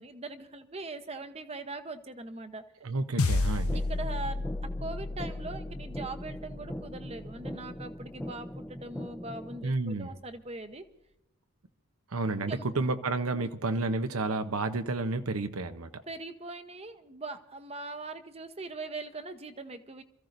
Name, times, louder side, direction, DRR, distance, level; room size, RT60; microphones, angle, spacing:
voice 1, 0.0-2.6 3.7-10.8 12.4-12.7 13.3-13.5 16.1-20.0, right 2 dB, 30° right, 0.9 m, -41 dB
voice 2, 2.8-3.8 9.6-10.1 12.1-15.9, right 3 dB, 80° right, 0.9 m, -31 dB
sound 1, 3.2-7.8, left 2 dB, 85° left, 0.8 m, -32 dB
sound 2, 3.7-9.7, equal, 5° left, 0.6 m, -41 dB
27.0 x 15.0 x 2.6 m
head